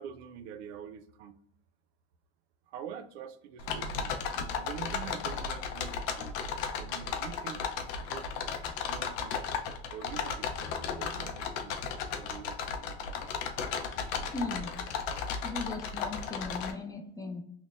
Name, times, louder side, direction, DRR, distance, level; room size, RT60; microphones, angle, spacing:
voice 1, 0.0-1.4 2.7-4.1 4.6-6.4 6.8-8.4 8.9-9.4 9.9-11.8 12.2-12.6, right 8 dB, 85° right, 10 dB, 0.5 m, -45 dB
sound 1, 3.6-16.7, left 6 dB, 65° left, 0.6 m, -35 dB
voice 2, 14.3-14.7 15.4-17.4, left 3 dB, 10° left, 4 dB, 0.3 m, -37 dB
5.7 x 2.1 x 2.4 m, 0.75 s
supercardioid pair, 110°, 32 cm